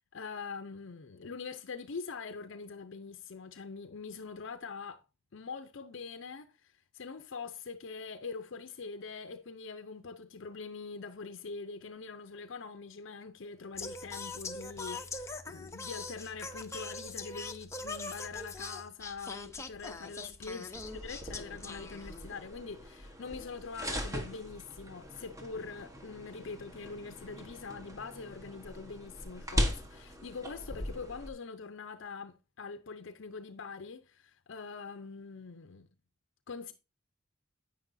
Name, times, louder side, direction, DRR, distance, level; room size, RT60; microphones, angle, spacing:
voice 1, 0.0-5.0 5.3-35.9 36.5-36.7, left 4 dB, 65° left, 0.6 m, -44 dB
Singing, 13.7-22.5, left 3 dB, 15° left, 0.8 m, -42 dB
sound 1, 20.7-31.3, equal, 15° right, 1.4 m, -39 dB
9.9 x 9.0 x 2.6 m
head